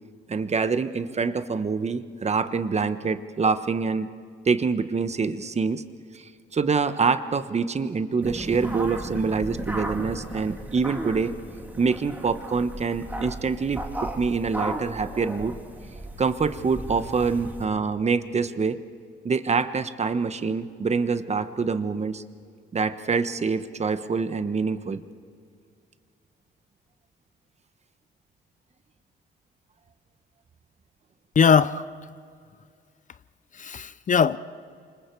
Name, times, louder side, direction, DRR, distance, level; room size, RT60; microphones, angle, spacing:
voice 1, 0.3-4.1 4.4-5.8 6.1-11.3 11.8-15.5 16.2-18.8 19.2-22.2 22.7-25.0, right 5 dB, 35° right, 1.2 m, -25 dB
sound 1, 8.2-17.6, right 1 dB, 10° right, 2.8 m, -35 dB
voice 2, 31.4-31.8 33.6-34.4, left 6 dB, 40° left, 0.6 m, -19 dB
28.5 x 25.5 x 4.7 m
cardioid pair, 90°, 20 cm